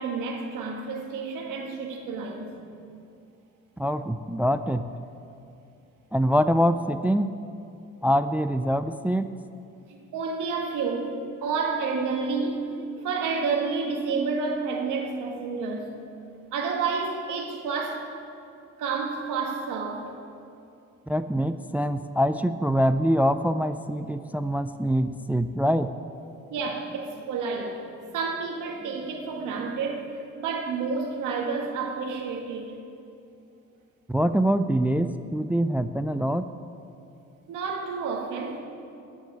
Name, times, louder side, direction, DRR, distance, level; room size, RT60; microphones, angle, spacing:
voice 1, 0.0-2.7 9.9-16.0 16.5-18.1 18.8-20.0 26.5-32.7 37.5-38.6, right 4 dB, 90° right, 1.7 m, -30 dB
voice 2, 3.8-4.8 6.1-7.3 8.0-9.3 21.1-25.9 34.1-36.5, equal, 5° right, 0.3 m, -24 dB
14.0 x 6.3 x 8.6 m
cardioid pair, 90°, 30 cm